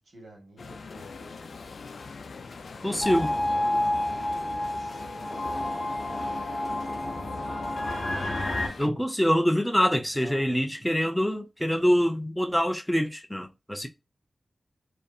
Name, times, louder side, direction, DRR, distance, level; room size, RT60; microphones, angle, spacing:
voice 1, 0.0-1.8 2.7-8.7 10.1-10.6, right 2 dB, 70° right, 1.2 m, -52 dB
sound 1, 0.6-8.9, left 4 dB, 75° left, 0.3 m, -43 dB
voice 2, 2.8-3.3 8.8-13.9, equal, 5° left, 0.4 m, -25 dB
sound 2, 3.0-8.7, left 1 dB, 45° left, 0.7 m, -29 dB
2.6 x 2.5 x 2.3 m
wide cardioid pair, 90°, 0 cm